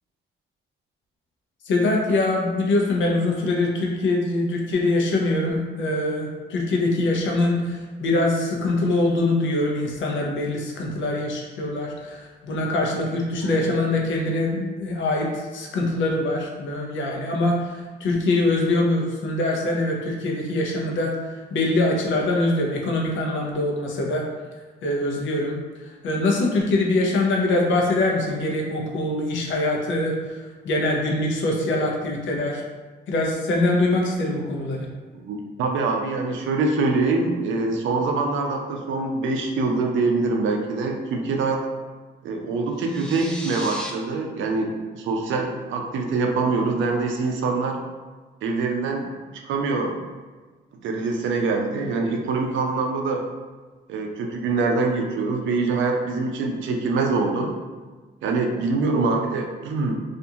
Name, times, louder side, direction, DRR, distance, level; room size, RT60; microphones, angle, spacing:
voice 1, 1.7-21.1 21.5-24.2 24.8-25.6 26.0-30.2 30.6-32.6 33.1-34.9, left 2 dB, 75° left, 0 dB, 0.6 m, -23 dB
voice 2, 35.1-41.6 42.2-47.8 48.4-49.1 49.4-49.9 50.8-53.2 53.9-57.5 58.2-59.9, right 3 dB, 75° right, 2 dB, 0.5 m, -24 dB
sound 1, 42.8-43.9, equal, 5° left, 0.3 m, -36 dB
2.5 x 2.4 x 2.7 m, 1.4 s
cardioid pair, 90°, 20 cm